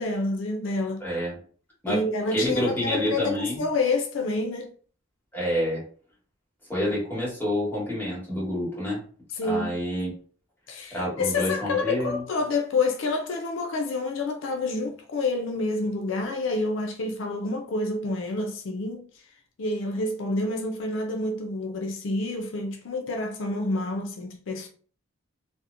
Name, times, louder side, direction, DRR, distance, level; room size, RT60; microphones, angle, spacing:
voice 1, 0.0-1.1 1.9-4.7 9.4-9.8 10.7-19.1 19.6-24.7, left 3 dB, 80° left, 0.4 m, -28 dB
voice 2, 1.0-1.4 1.8-2.0 2.3-3.6 5.3-5.8 6.7-9.0 9.4-10.1 10.9-12.2, equal, 10° left, 1.3 m, -28 dB
2.8 x 2.0 x 2.5 m
head